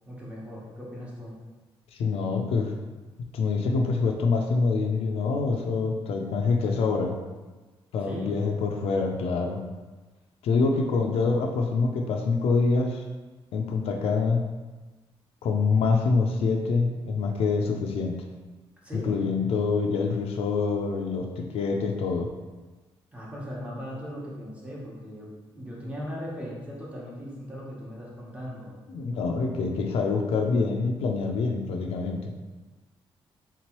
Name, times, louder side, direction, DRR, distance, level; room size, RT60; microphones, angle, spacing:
voice 1, 0.1-1.3 8.0-8.4 18.8-19.2 23.1-28.7, equal, 15° right, -6 dB, 1.0 m, -38 dB
voice 2, 1.9-2.7 3.3-7.1 7.9-9.6 10.4-13.0 13.5-14.4 15.4-18.2 19.1-22.3 28.9-32.3, left 4 dB, 80° left, 2 dB, 0.4 m, -25 dB
3.6 x 3.0 x 3.0 m, 1.2 s
cardioid pair, 130°, 10 cm